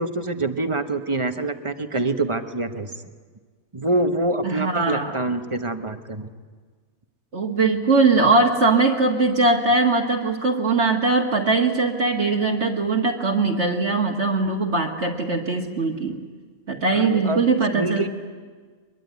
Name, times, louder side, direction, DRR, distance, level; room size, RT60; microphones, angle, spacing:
voice 1, 0.0-2.9 3.7-6.3 16.9-17.4 17.7-18.1, right 2 dB, 25° right, 8 dB, 1.1 m, -25 dB
voice 2, 4.4-5.2 7.3-16.2 16.7-18.1, right 3 dB, 50° right, 0 dB, 1.9 m, -21 dB
23.0 x 22.0 x 9.5 m, 1.5 s
omnidirectional pair, 1.5 m